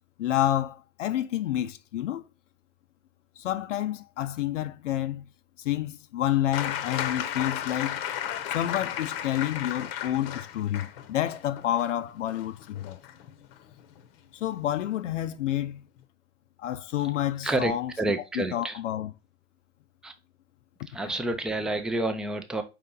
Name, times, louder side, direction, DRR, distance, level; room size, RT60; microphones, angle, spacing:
voice 1, 0.2-2.3 3.4-5.3 5.6-8.0 8.5-13.0 14.3-15.8 16.6-17.9 18.4-19.1, left 12 dB, 80° left, 0.5 m, -29 dB
sound 1, 6.5-14.1 15.3-15.4, left 10 dB, 50° left, 0.8 m, -34 dB
voice 2, 17.4-18.8 20.0-20.1 20.9-22.6, right 2 dB, ahead, 0.4 m, -29 dB
4.9 x 2.9 x 3.6 m
hypercardioid pair, 105°, 36 cm